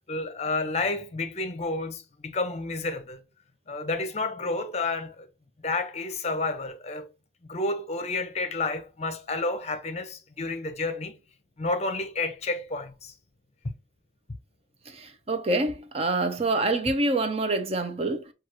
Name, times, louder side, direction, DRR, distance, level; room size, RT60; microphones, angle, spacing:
voice 1, 0.1-3.2 3.7-5.3 5.6-7.1 7.5-11.1 11.6-13.1, left 3 dB, 35° left, 0.6 m, -30 dB
voice 2, 14.9-18.3, right 2 dB, 35° right, 0.5 m, -26 dB
6.1 x 2.3 x 3.0 m
head